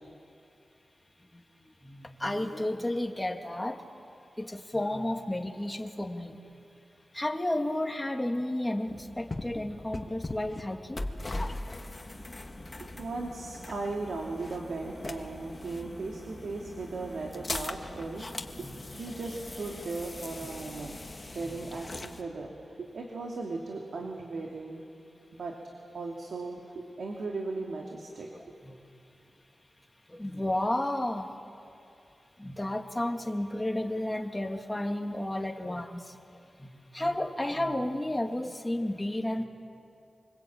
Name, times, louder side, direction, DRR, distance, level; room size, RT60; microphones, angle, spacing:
voice 1, 1.8-3.8 4.4-6.4 7.1-11.0 18.6-18.8 21.4-21.5 28.3-28.8 30.1-31.3 32.4-36.2 36.6-36.7 36.9-39.4, left 1 dB, 15° left, 3 dB, 2.5 m, -32 dB
sound 1, 8.9-22.2, left 2 dB, 35° left, 2.0 m, -40 dB
voice 2, 12.8-18.3 18.5-24.8 25.3-25.5 25.9-28.3, right 3 dB, 80° right, 0 dB, 2.8 m, -37 dB
25.5 x 24.5 x 8.9 m, 2.6 s
cardioid pair, 60°, 0 cm